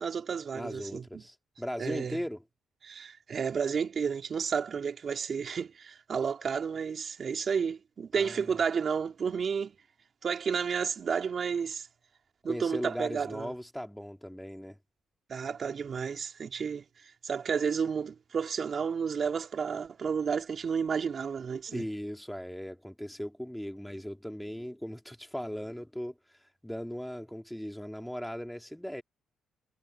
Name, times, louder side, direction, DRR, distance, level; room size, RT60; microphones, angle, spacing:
voice 1, 0.0-1.2 1.8-2.2 2.8-9.8 10.2-11.9 12.4-13.5 15.3-16.8 17.2-21.8, right 6 dB, 50° right, 3.7 m, -31 dB
voice 2, 0.5-2.4 8.1-8.6 12.4-14.8 21.7-29.0, equal, 5° left, 2.7 m, -38 dB
cardioid pair, 90°, 0 cm